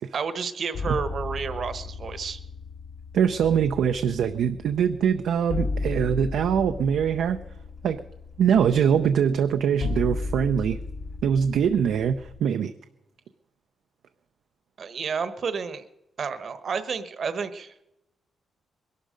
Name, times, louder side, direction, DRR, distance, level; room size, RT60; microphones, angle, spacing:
voice 1, 0.1-2.4 14.8-15.9 16.2-17.7, right 5 dB, 50° right, 12 dB, 1.1 m, -30 dB
sound 1, 0.7-12.4, left 3 dB, 75° left, 1.3 m, -35 dB
voice 2, 3.1-7.4 7.8-8.0 8.4-10.8 11.2-12.7, right 8 dB, 90° right, 8 dB, 0.6 m, -23 dB
21.5 x 12.0 x 5.1 m, 0.87 s
cardioid pair, 120°, 0 cm